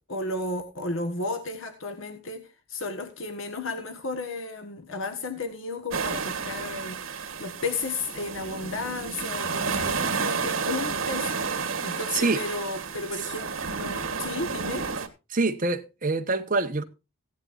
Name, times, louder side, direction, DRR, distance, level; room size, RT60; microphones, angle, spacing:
voice 1, 0.1-14.9, left 3 dB, 70° left, 1.6 m, -33 dB
sound 1, 5.9-15.1, right 5 dB, 70° right, 2.3 m, -31 dB
voice 2, 12.1-12.4 15.3-16.8, right 3 dB, 40° right, 1.2 m, -25 dB
16.5 x 11.0 x 2.6 m
head